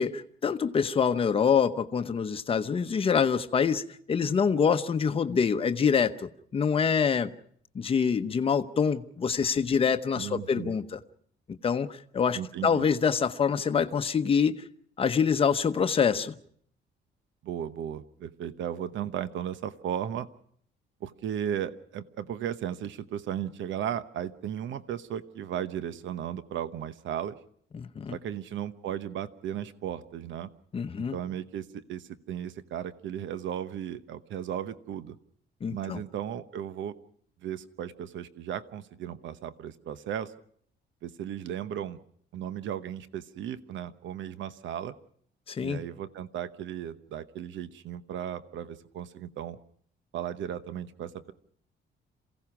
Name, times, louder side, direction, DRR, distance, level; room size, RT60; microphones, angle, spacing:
voice 1, 0.0-7.3 7.7-11.0 11.6-14.6 15.0-16.3 27.7-28.2 30.7-31.2 35.6-36.0 45.5-45.8, left 6 dB, 30° left, 0.8 m, -26 dB
voice 2, 10.2-10.8 12.3-12.9 17.4-20.3 21.0-27.4 28.1-30.5 31.0-35.2 35.7-37.0 37.4-40.3 41.0-42.0 42.3-44.9 45.6-49.6 50.1-51.3, right 10 dB, 70° right, 1.0 m, -35 dB
27.5 x 16.5 x 6.0 m
cardioid pair, 165°, 20 cm